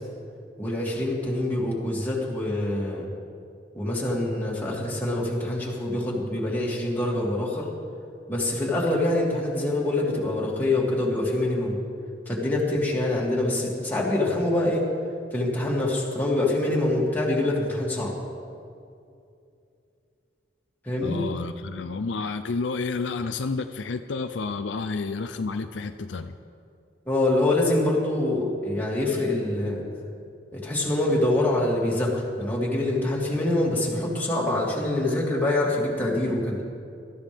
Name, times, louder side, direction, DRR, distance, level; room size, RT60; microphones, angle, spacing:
voice 1, 0.6-3.1 3.7-7.7 8.3-11.8 12.3-14.8 15.3-18.2 20.8-21.2 27.1-29.8 30.5-36.6, left 1 dB, 10° left, -5 dB, 2.7 m, -25 dB
voice 2, 21.0-26.3, left 4 dB, 70° left, 8 dB, 0.5 m, -30 dB
20.5 x 13.0 x 3.6 m, 2.5 s
head